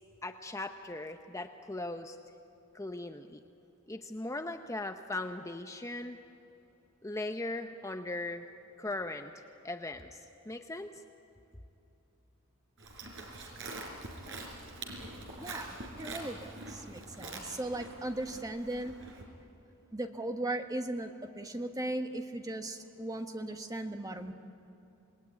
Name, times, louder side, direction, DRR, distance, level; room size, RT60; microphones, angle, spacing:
voice 1, 0.2-2.2 2.7-3.4 3.9-6.2 7.0-8.5 8.8-9.3 9.6-11.0, left 2 dB, 15° left, 7 dB, 0.8 m, -39 dB
Livestock farm animals working animals, 12.8-19.2, right 2 dB, 65° right, 4.6 m, -44 dB
voice 2, 15.4-19.0 19.9-24.3, right 1 dB, 20° right, 6 dB, 1.4 m, -37 dB
27.5 x 20.0 x 9.6 m, 2.8 s
head